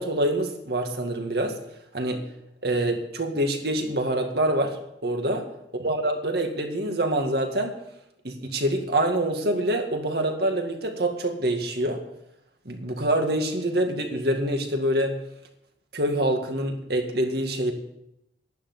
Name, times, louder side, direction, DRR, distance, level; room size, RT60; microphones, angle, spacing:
voice 1, 0.0-1.6 1.9-2.2 2.6-5.5 5.8-7.7 8.2-12.0 12.7-15.2 15.9-17.7, right 1 dB, 60° right, 4 dB, 2.1 m, -25 dB
11.5 x 11.0 x 8.2 m, 0.83 s
head